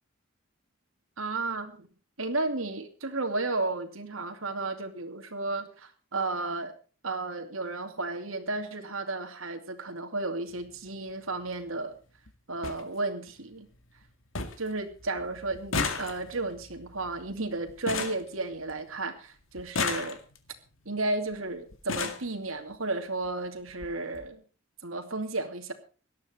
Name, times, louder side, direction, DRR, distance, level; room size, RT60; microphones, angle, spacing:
voice 1, 1.2-1.9 2.2-6.7 7.0-12.0 12.5-13.7 14.6-20.2 20.9-24.4 24.8-25.7, right 2 dB, 85° right, 5 dB, 2.6 m, -33 dB
sound 1, 10.5-10.7 11.9-12.0 12.3-12.4 12.6-12.8 13.3-13.8 14.0-14.1 14.3-14.7 15.0-19.0 19.6-20.5 21.3-21.4 21.7-22.3 23.2-23.3 23.7-23.9 24.1-24.3, left 4 dB, 70° left, 2.2 m, -34 dB
18.0 x 12.5 x 4.4 m, 0.36 s
head